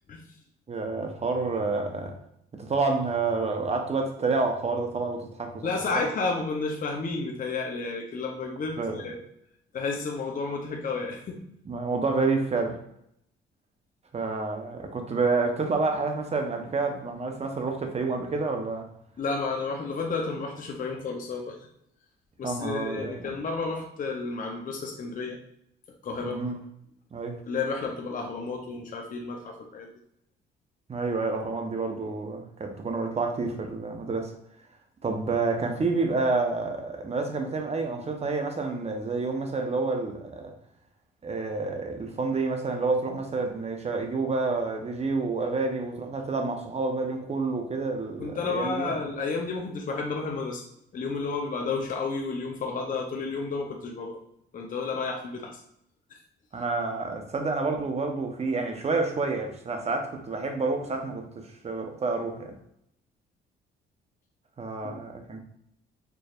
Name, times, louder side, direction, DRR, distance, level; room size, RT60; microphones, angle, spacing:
voice 1, 0.7-2.2 2.6-6.0 8.8-9.0 11.6-12.8 14.1-18.9 22.4-23.3 26.2-26.6 27.1-27.4 30.9-34.3 35.0-40.5 41.2-48.9 56.5-62.6 64.6-65.4, right 3 dB, 30° right, 0.8 m, -29 dB
voice 2, 5.6-9.2 9.7-11.4 19.2-21.6 22.4-25.4 26.0-26.4 27.5-29.9 48.2-50.6 50.9-54.2 54.5-55.6 64.8-65.0, left 4 dB, 45° left, 0.7 m, -31 dB
4.6 x 3.1 x 2.4 m
cardioid pair, 90°, 20 cm